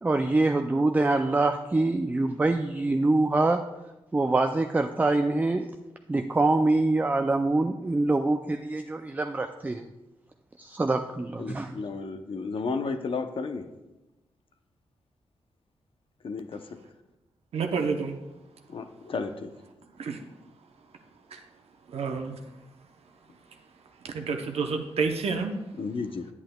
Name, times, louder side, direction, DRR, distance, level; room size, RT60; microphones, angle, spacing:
voice 1, 0.0-3.6 4.1-5.7 6.1-9.9 10.6-11.8, right 2 dB, 15° right, 6 dB, 0.3 m, -25 dB
voice 2, 11.4-13.6 16.2-16.6 18.7-19.5 25.8-26.3, left 4 dB, 60° left, 7 dB, 0.6 m, -33 dB
voice 3, 17.5-18.2 20.0-20.2 21.3-21.4 21.9-22.4 24.0-25.6, right 4 dB, 80° right, 4 dB, 0.7 m, -29 dB
9.6 x 8.7 x 2.2 m, 1.0 s
cardioid pair, 90°, 10 cm